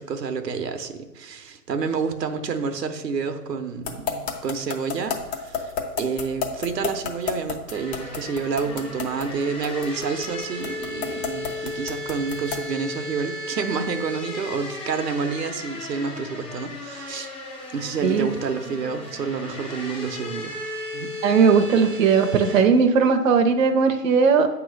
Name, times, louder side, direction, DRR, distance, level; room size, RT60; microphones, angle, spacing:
voice 1, 0.0-5.7 6.0-17.3 17.7-20.5 20.9-21.1, right 5 dB, 85° right, 7 dB, 0.9 m, -29 dB
sound 1, 3.8-12.7, left 7 dB, 40° left, 1.2 m, -29 dB
sound 2, 7.7-22.6, left 2 dB, 10° left, 0.6 m, -35 dB
voice 2, 18.0-18.3 21.2-24.5, right 5 dB, 55° right, 5 dB, 0.7 m, -18 dB
8.9 x 3.1 x 6.3 m, 1.0 s
hypercardioid pair, 140°, 47 cm